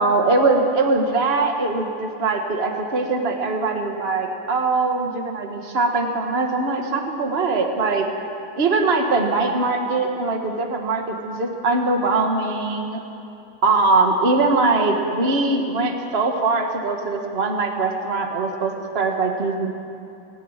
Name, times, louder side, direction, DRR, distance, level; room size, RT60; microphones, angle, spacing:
voice 1, 0.0-8.1 8.6-13.0 13.6-19.7, right 3 dB, 30° right, 3 dB, 1.3 m, -21 dB
18.0 x 16.5 x 9.1 m, 2.7 s
omnidirectional pair, 3.5 m